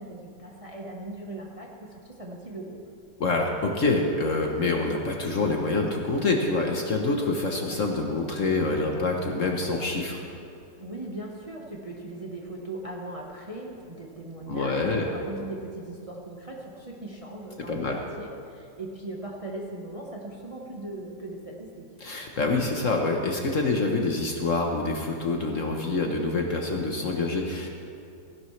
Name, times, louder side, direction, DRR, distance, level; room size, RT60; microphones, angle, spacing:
voice 1, 0.0-2.8 10.8-21.8, right 2 dB, 20° right, -2 dB, 1.0 m, -39 dB
voice 2, 3.2-10.2 14.5-15.1 17.7-18.0 22.0-27.7, left 3 dB, 50° left, 1 dB, 1.2 m, -26 dB
16.5 x 15.5 x 3.2 m, 2.5 s
omnidirectional pair, 2.0 m